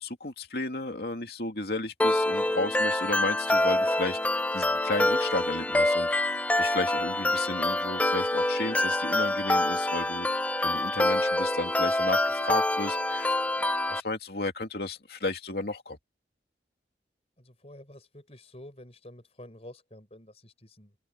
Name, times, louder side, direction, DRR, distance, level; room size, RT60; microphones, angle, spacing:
voice 1, 0.0-13.4 13.9-16.0, left 2 dB, 60° left, 2.6 m, -33 dB
sound 1, 2.0-14.0, left 1 dB, 10° left, 0.4 m, -26 dB
voice 2, 17.4-21.0, left 1 dB, 35° left, 5.2 m, -49 dB
head